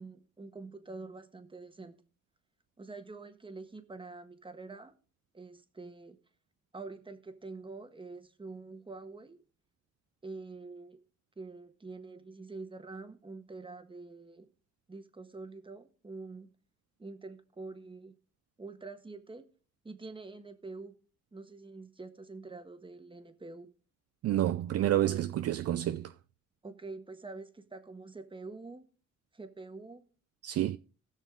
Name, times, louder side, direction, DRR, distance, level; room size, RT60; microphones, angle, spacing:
voice 1, 0.0-2.0 2.8-4.9 5.3-6.2 6.7-9.4 10.2-11.0 11.4-14.5 14.9-16.5 17.0-18.1 18.6-19.5 19.8-20.9 21.3-23.7 26.6-28.9 29.3-30.0, right 3 dB, 15° right, 1.4 m, -46 dB
voice 2, 24.2-26.1 30.4-30.8, right 13 dB, 55° right, 0.5 m, -29 dB
18.5 x 6.3 x 3.8 m
cardioid pair, 90°, 30 cm